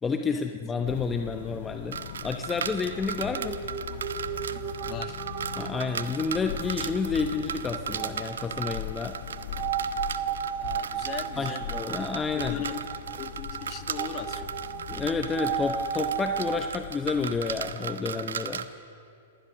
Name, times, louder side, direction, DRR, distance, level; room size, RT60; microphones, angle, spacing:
voice 1, 0.0-3.6 5.6-9.2 11.4-12.5 14.9-18.7, left 5 dB, 15° left, 6 dB, 1.0 m, -30 dB
sound 1, 0.8-17.8, left 14 dB, 60° left, 0.5 m, -41 dB
sound 2, 1.9-18.7, right 7 dB, 80° right, 1.0 m, -37 dB
sound 3, 3.4-16.6, right 9 dB, 45° right, 1.5 m, -35 dB
voice 2, 4.9-5.2 10.6-12.0 12.3-12.9 13.2-14.7, left 10 dB, 35° left, 9 dB, 1.7 m, -39 dB
27.5 x 19.5 x 6.4 m, 2.5 s
hypercardioid pair, 115°, 0 cm